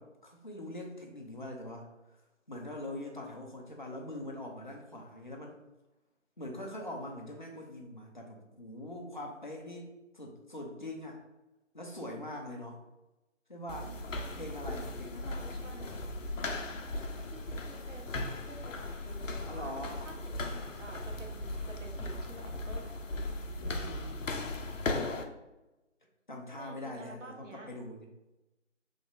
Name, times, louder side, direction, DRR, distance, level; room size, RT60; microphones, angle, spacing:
voice 1, 0.0-1.9 2.5-5.6 6.4-11.2 11.7-12.8 13.5-14.0 14.3-15.4 18.5-18.7 19.5-20.0 23.6-24.9 26.3-28.1, left 1 dB, 40° left, 0 dB, 0.6 m, -43 dB
sound 1, 13.7-25.2, left 2 dB, 75° left, 0.6 m, -37 dB
voice 2, 15.2-16.1 16.7-19.7 20.0-23.0 26.6-27.7, right 2 dB, 70° right, 2 dB, 0.9 m, -50 dB
3.8 x 3.0 x 2.6 m, 1.0 s
figure-of-eight pair, 170°, 38 cm